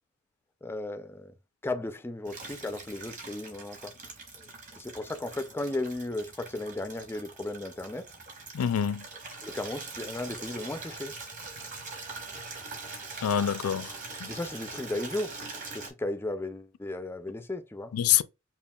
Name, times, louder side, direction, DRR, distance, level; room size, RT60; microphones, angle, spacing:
voice 1, 0.6-1.3 1.6-3.9 4.3-4.5 4.7-8.1 9.4-11.1 14.3-15.4 15.8-17.9, left 2 dB, 10° left, 0.3 m, -35 dB
Water tap faucet / Liquid, 2.3-15.9, right 3 dB, 35° right, 1.3 m, -43 dB
voice 2, 8.5-9.1 13.2-14.3 17.9-18.2, left 9 dB, 80° left, 0.4 m, -26 dB
5.3 x 2.4 x 2.3 m
head